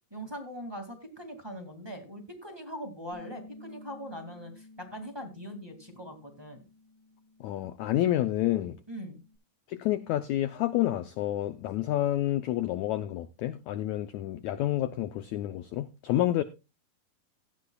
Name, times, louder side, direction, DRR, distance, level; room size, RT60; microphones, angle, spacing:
voice 1, 0.1-6.6 8.9-9.2, equal, 10° right, 1.4 m, -41 dB
Bass guitar, 3.1-9.4, left 3 dB, 60° left, 7.6 m, -54 dB
voice 2, 7.4-8.8 9.7-16.4, left 13 dB, 85° left, 1.6 m, -29 dB
16.5 x 11.5 x 2.3 m
omnidirectional pair, 4.1 m